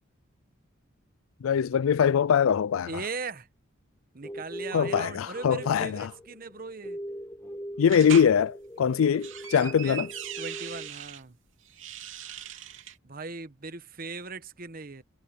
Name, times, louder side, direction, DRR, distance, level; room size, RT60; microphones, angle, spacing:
voice 1, 1.4-3.0 4.7-6.1 7.8-10.1, left 7 dB, 80° left, 0.4 m, -23 dB
voice 2, 2.9-3.5 4.1-7.0 9.5-10.1 10.4-11.4 13.0-15.0, right 4 dB, 45° right, 1.1 m, -39 dB
sound 1, 4.2-10.9, equal, 10° left, 1.4 m, -41 dB
sound 2, 7.9-8.3 9.0-11.2 11.7-13.0, right 9 dB, 65° right, 3.3 m, -39 dB
head